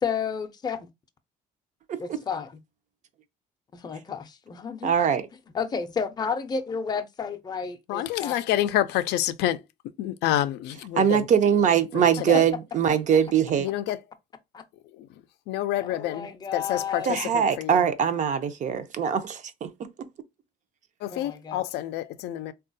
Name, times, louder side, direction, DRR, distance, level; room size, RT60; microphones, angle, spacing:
voice 1, 0.0-0.9 2.0-2.6 3.7-4.9 5.5-8.4 14.5-14.6 15.8-17.1 21.1-21.6, left 6 dB, 25° left, 0.5 m, -31 dB
voice 2, 4.8-5.3 11.0-13.7 17.1-19.9, right 8 dB, 45° right, 0.5 m, -22 dB
voice 3, 7.9-9.6 10.0-11.3 11.9-12.5 13.6-14.0 14.9-15.1 15.5-17.9 21.0-22.5, left 13 dB, 80° left, 0.4 m, -28 dB
3.5 x 2.3 x 2.5 m
cardioid pair, 110°, 17 cm